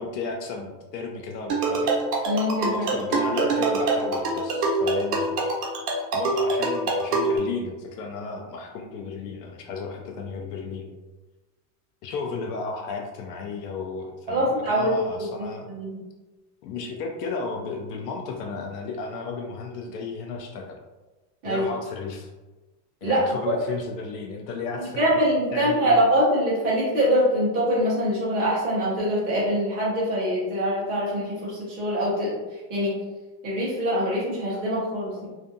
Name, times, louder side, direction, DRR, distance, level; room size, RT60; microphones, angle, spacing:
voice 1, 0.0-1.9 2.7-5.5 6.1-10.9 12.0-15.7 16.6-20.8 21.4-22.3 23.0-25.2 25.5-26.0, left 4 dB, 75° left, 2 dB, 0.5 m, -33 dB
sound 1, 1.5-7.4, right 3 dB, 70° right, 0.8 m, -25 dB
voice 2, 2.2-2.9 14.3-16.0 21.4-21.7 23.0-23.2 23.5-23.6 25.0-32.9 33.4-35.3, equal, 20° right, -7 dB, 0.6 m, -24 dB
2.5 x 2.4 x 2.5 m, 1.2 s
supercardioid pair, 170°, 49 cm